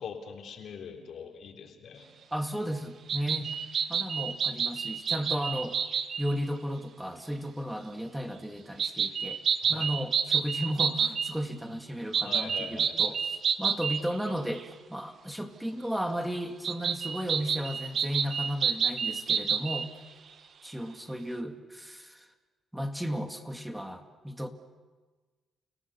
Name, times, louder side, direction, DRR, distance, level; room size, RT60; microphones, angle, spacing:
voice 1, 0.0-2.1 3.3-3.5 9.6-9.9 12.2-13.2, left 6 dB, 65° left, 2 dB, 3.8 m, -43 dB
voice 2, 2.3-3.6 3.9-5.8 6.2-9.4 9.7-19.9 20.6-22.3 22.7-24.5, equal, 5° right, 7 dB, 2.0 m, -34 dB
sound 1, 3.1-6.3 8.8-11.3 12.1-14.3 14.6-14.7 16.6-19.9, right 7 dB, 55° right, 1.1 m, -29 dB
30.0 x 17.5 x 7.0 m, 1.3 s
cardioid pair, 90°, 0 cm